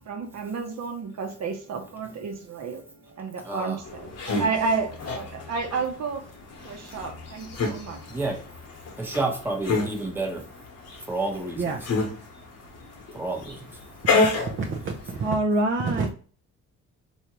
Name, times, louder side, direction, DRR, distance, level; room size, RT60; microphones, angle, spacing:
voice 1, 0.1-2.8 3.2-6.2 6.6-8.5, right 4 dB, 60° right, 4 dB, 1.0 m, -31 dB
voice 2, 3.4-3.8 6.9-7.0 8.1-8.4 9.0-10.4 11.0-11.8 13.1-13.8, right 2 dB, 5° right, 1 dB, 0.9 m, -30 dB
sound 1, 3.8-15.3, left 3 dB, 55° left, 1.0 m, -30 dB
voice 3, 15.2-16.1, right 2 dB, 40° right, 2 dB, 0.6 m, -24 dB
3.3 x 2.7 x 2.9 m, 0.40 s
cardioid pair, 90°, 30 cm